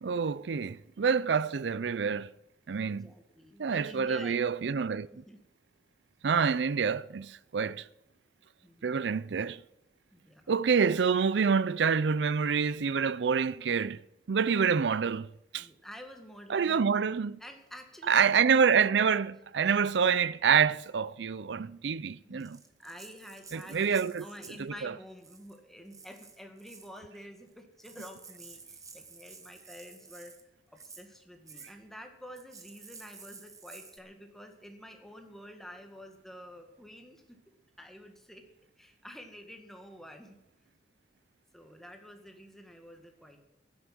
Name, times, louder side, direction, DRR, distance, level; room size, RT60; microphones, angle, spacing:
voice 1, 0.0-2.3 2.7-3.1 3.6-5.1 6.2-7.8 8.8-9.6 10.5-14.0 14.3-15.3 15.5-15.7 16.5-17.4 18.1-22.6 23.5-24.2 24.6-24.9, right 6 dB, 70° right, 0.5 m, -27 dB
voice 2, 2.8-4.4 5.1-5.4 8.6-9.0 10.1-10.5 15.5-16.8 17.4-18.4 22.2-30.3 30.7-37.4 37.8-38.4 38.8-40.4 41.5-43.4, equal, ahead, 2.0 m, -49 dB
Rattle (instrument), 22.4-24.7 25.2-25.6 25.9-27.0 27.5-27.6 27.8-30.4 30.8-31.1 31.5-31.7 32.4-34.0, right 5 dB, 20° right, 1.4 m, -51 dB
15.5 x 11.5 x 6.1 m
head